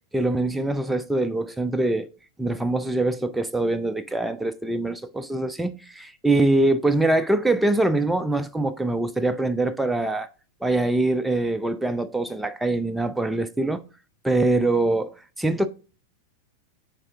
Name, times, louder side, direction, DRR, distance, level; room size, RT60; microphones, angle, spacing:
voice 1, 0.1-2.1 2.4-10.3 10.6-13.8 14.2-15.1 15.4-15.7, right 2 dB, 5° right, 0.5 m, -23 dB
8.8 x 3.5 x 3.6 m
figure-of-eight pair, 90°, 0 cm